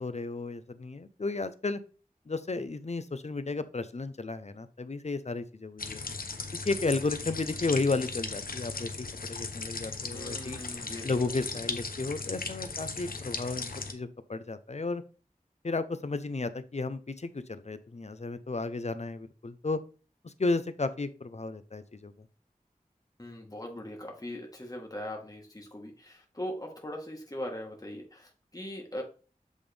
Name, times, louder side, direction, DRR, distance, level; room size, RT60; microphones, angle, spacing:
voice 1, 0.0-1.8 2.3-6.0 6.7-10.6 11.0-15.0 15.6-19.8 20.2-22.1, left 3 dB, 50° left, 12 dB, 0.6 m, -33 dB
sound 1, 5.8-13.9, left 4 dB, 85° left, 0.7 m, -37 dB
voice 2, 10.1-11.2 23.2-29.0, left 1 dB, 25° left, 0 dB, 1.3 m, -40 dB
8.2 x 3.6 x 3.4 m, 0.37 s
wide cardioid pair, 50°, 15 cm